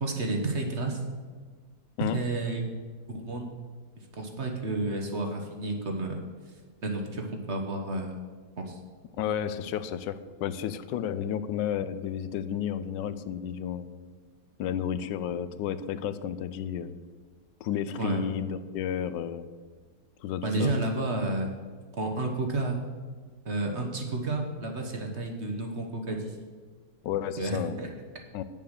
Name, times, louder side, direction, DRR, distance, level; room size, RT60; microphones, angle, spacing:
voice 1, 0.0-1.0 2.1-2.6 3.1-3.5 4.2-6.2 6.8-8.2 8.6-8.8 18.0-18.2 20.4-21.5 22.0-22.8 23.4-26.3 27.4-27.9, right 2 dB, 40° right, 2 dB, 1.4 m, -31 dB
voice 2, 9.2-13.9 14.6-16.9 17.6-19.5 20.2-20.7 27.0-27.8 28.3-28.4, left 9 dB, 85° left, 13 dB, 1.3 m, -32 dB
9.3 x 7.1 x 6.6 m, 1.5 s
omnidirectional pair, 1.9 m